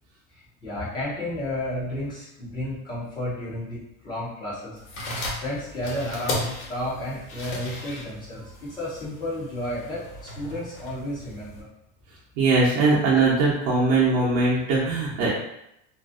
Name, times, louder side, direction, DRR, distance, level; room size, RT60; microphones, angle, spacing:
voice 1, 0.3-4.8 5.4-10.0 10.4-11.7, left 1 dB, 10° left, -8 dB, 0.3 m, -32 dB
sound 1, 4.8-11.6, left 1 dB, 90° left, 1.1 m, -36 dB
voice 2, 12.4-15.4, right 3 dB, 55° right, -6 dB, 0.7 m, -21 dB
2.6 x 2.4 x 2.4 m, 0.82 s
cardioid pair, 170°, 39 cm